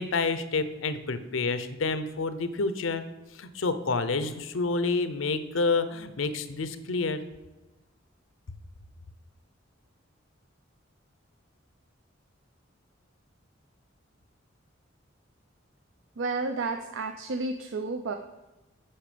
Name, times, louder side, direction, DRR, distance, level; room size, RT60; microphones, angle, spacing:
voice 1, 0.0-3.0 3.3-7.2, left 3 dB, 85° left, 12 dB, 0.7 m, -28 dB
voice 2, 16.2-18.2, right 3 dB, 75° right, 6 dB, 0.5 m, -31 dB
8.6 x 5.8 x 5.1 m, 1.1 s
head